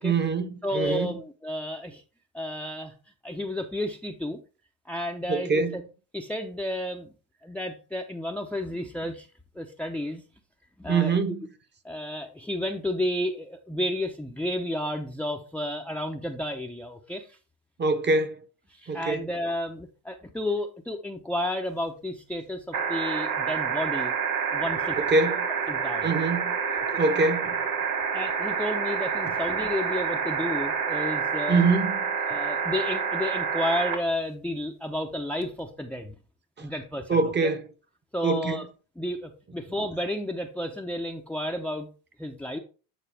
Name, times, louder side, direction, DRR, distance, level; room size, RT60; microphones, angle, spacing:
voice 1, 0.0-1.2 5.3-5.7 10.9-11.4 17.8-18.4 18.9-19.3 25.0-25.5 26.0-26.6 27.0-27.6 29.3-29.4 31.5-32.0 36.6-36.7 37.1-37.6 38.2-38.6, right 3 dB, 25° right, 0.9 m, -24 dB
voice 2, 0.6-2.0 2.3-2.9 3.2-4.4 4.9-5.8 6.1-7.1 7.4-9.3 9.5-10.2 10.8-11.2 11.8-17.4 18.7-24.1 24.5-25.0 25.7-26.1 28.1-31.6 32.3-36.1 36.6-37.5 38.1-38.6 39.0-41.9 42.2-42.6, left 1 dB, 5° left, 0.6 m, -32 dB
sound 1, 22.7-34.0 35.4-35.5, right 6 dB, 45° right, 1.7 m, -28 dB
9.1 x 4.1 x 3.4 m
supercardioid pair, 90°, 45 cm